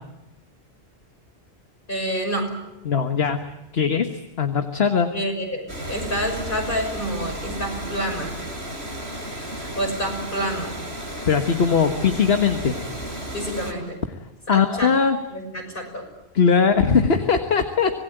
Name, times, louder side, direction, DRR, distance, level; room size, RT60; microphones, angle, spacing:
voice 1, 1.9-2.5 5.1-8.3 9.6-10.7 13.3-14.0 14.5-14.9 15.3-16.0, equal, 55° left, 2 dB, 6.6 m, -28 dB
voice 2, 2.8-3.4 3.7-4.1 4.4-5.1 11.3-12.8 14.5-15.2 16.3-18.0, left 6 dB, 70° left, 6 dB, 1.6 m, -20 dB
Water, 5.7-13.7, right 1 dB, 85° right, 6.7 m, -33 dB
26.0 x 19.0 x 9.1 m, 0.97 s
omnidirectional pair, 1.1 m